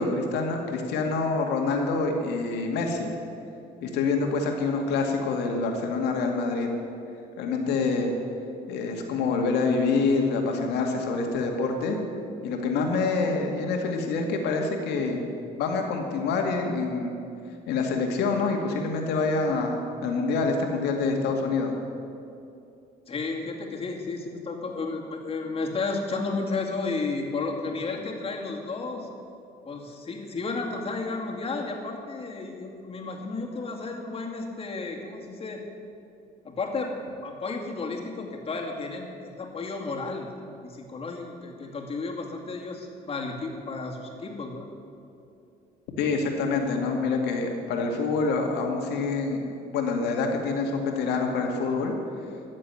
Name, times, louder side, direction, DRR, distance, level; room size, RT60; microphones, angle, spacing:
voice 1, 0.0-3.1 3.8-6.7 7.4-8.1 8.7-12.0 12.4-15.2 15.6-17.2 17.7-21.7 46.0-49.5 49.7-51.9, left 4 dB, 85° left, 2 dB, 2.1 m, -26 dB
voice 2, 23.1-29.1 29.7-35.6 36.4-37.0 37.2-40.3 40.6-44.7, left 3 dB, 35° left, 0 dB, 2.3 m, -32 dB
13.5 x 7.6 x 9.7 m, 2.6 s
cardioid pair, 110°, 17 cm